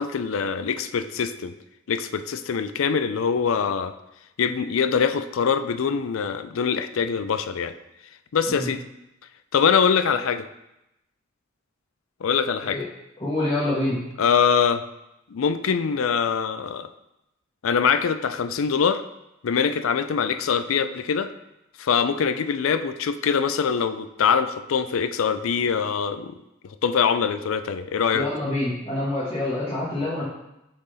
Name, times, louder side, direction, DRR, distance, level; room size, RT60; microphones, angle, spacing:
voice 1, 0.0-1.5 1.9-3.9 4.4-7.7 8.3-8.8 9.5-10.5 12.2-12.8 14.2-14.8 15.3-16.9 17.6-19.0 19.4-21.3 21.8-26.4 26.6-28.3, left 6 dB, 80° left, 11 dB, 0.4 m, -23 dB
voice 2, 13.2-14.0 28.1-30.2, left 1 dB, 30° left, -9 dB, 1.3 m, -26 dB
6.8 x 3.9 x 4.1 m, 0.87 s
head